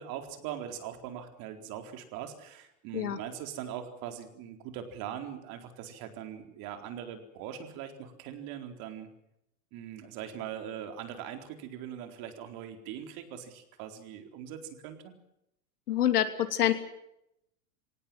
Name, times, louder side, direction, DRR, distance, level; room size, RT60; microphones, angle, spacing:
voice 1, 0.0-9.1 9.7-15.1, right 9 dB, 50° right, 6 dB, 4.2 m, -41 dB
voice 2, 15.9-16.7, left 11 dB, 85° left, 8 dB, 3.0 m, -26 dB
24.5 x 18.0 x 7.7 m, 0.79 s
hypercardioid pair, 120°, 45 cm